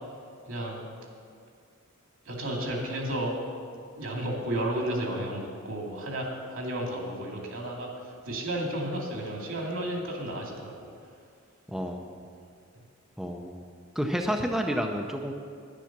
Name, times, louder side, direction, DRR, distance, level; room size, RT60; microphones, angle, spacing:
voice 1, 0.5-0.8 2.3-3.4 4.0-7.9 8.2-10.9, right 1 dB, 75° right, -1 dB, 2.5 m, -32 dB
voice 2, 11.7-12.2 13.2-13.6 14.0-15.3, equal, ahead, 2 dB, 0.5 m, -30 dB
10.5 x 10.0 x 5.9 m, 2.3 s
head